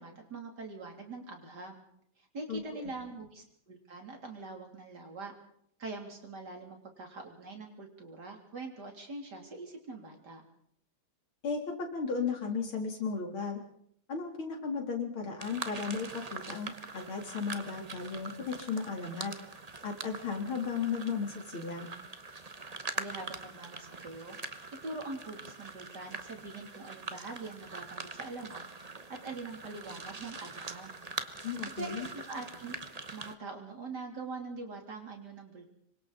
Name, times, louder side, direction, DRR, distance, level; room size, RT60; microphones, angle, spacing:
voice 1, 0.0-1.8 2.2-5.3 5.8-10.4 22.9-24.4 24.8-28.6 28.9-31.0 31.7-32.8 33.1-35.7, right 3 dB, 55° right, 2 dB, 3.8 m, -43 dB
voice 2, 2.5-2.8 11.4-13.6 14.1-19.3 19.8-21.9 31.4-32.1, left 5 dB, 85° left, 1 dB, 4.2 m, -35 dB
sound 1, 15.4-33.3, right 3 dB, 30° right, 0.8 m, -43 dB
26.5 x 23.5 x 4.1 m, 0.69 s
omnidirectional pair, 2.2 m